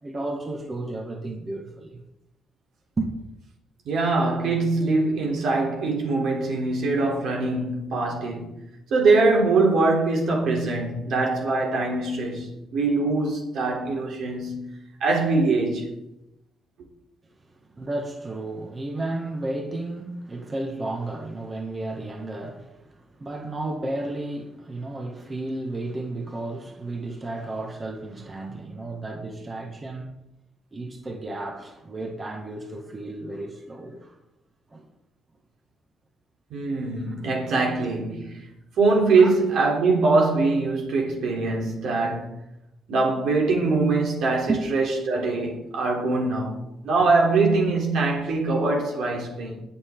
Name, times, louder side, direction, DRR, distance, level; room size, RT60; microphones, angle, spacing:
voice 1, 0.0-2.0 3.0-3.1 17.4-30.2 30.7-34.2 34.7-34.8 37.0-37.2 37.6-37.7 39.2-39.3 44.5-44.6, right 2 dB, 30° right, 1.9 m, -33 dB
voice 2, 3.9-8.5 8.9-14.7 15.0-15.9 36.5-38.4 38.8-42.3 42.9-49.6, right 3 dB, 75° right, 3.5 m, -23 dB
21.0 x 7.0 x 3.9 m
cardioid pair, 90°, 0 cm